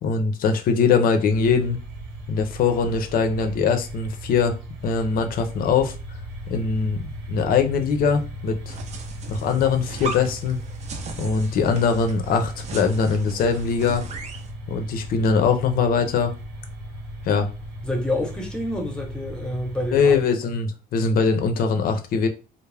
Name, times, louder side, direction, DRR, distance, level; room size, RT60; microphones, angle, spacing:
voice 1, 0.0-1.8 2.3-4.6 4.8-5.9 6.5-8.8 9.3-10.6 11.2-14.0 14.7-16.3 17.2-17.5 19.9-22.3, left 5 dB, 60° left, 0.5 m, -22 dB
sound 1, 1.3-20.2, right 1 dB, 90° right, 0.9 m, -37 dB
sound 2, 8.7-14.5, right 3 dB, 40° right, 0.5 m, -37 dB
voice 2, 17.8-20.1, left 1 dB, 5° left, 0.8 m, -28 dB
2.3 x 2.0 x 3.2 m
cardioid pair, 110°, 17 cm